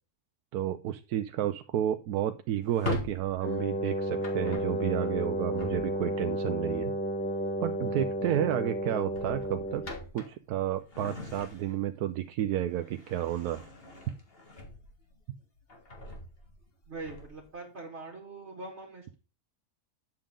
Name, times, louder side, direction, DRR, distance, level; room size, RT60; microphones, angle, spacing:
voice 1, 0.5-6.9 7.6-9.8 10.1-13.6, right 11 dB, 80° right, 9 dB, 1.1 m, -31 dB
Drawer open or close, 2.6-6.3 7.8-8.1 8.4-8.6 9.0-12.0 12.4-15.1 15.6-17.5, left 2 dB, 40° left, 2.1 m, -42 dB
Wind instrument woodwind instrument, 3.4-10.0, equal, 10° left, 1.0 m, -32 dB
voice 2, 16.9-19.1, right 3 dB, 45° right, 0 dB, 2.0 m, -42 dB
10.0 x 7.5 x 3.7 m, 0.33 s
omnidirectional pair, 1.6 m